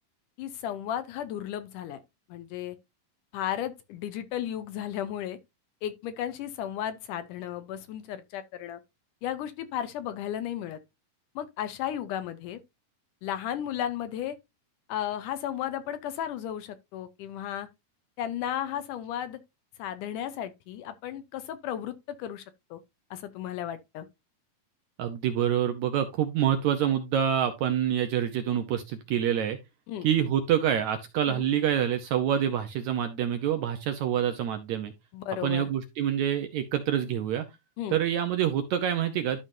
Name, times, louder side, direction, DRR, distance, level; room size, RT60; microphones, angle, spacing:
voice 1, 0.4-2.0 2.3-2.8 3.3-5.4 5.8-8.8 9.2-10.8 11.4-12.6 13.2-14.4 14.9-17.7 18.2-19.4 19.8-22.5 22.7-22.8 23.1-24.1 29.9-30.1 31.3-31.5 35.1-35.7 37.8-38.0, left 10 dB, 75° left, 2.0 m, -34 dB
voice 2, 25.0-29.6 30.0-34.9 35.4-37.5 37.9-39.4, right 10 dB, 75° right, 1.8 m, -26 dB
12.5 x 5.5 x 2.6 m
omnidirectional pair, 4.1 m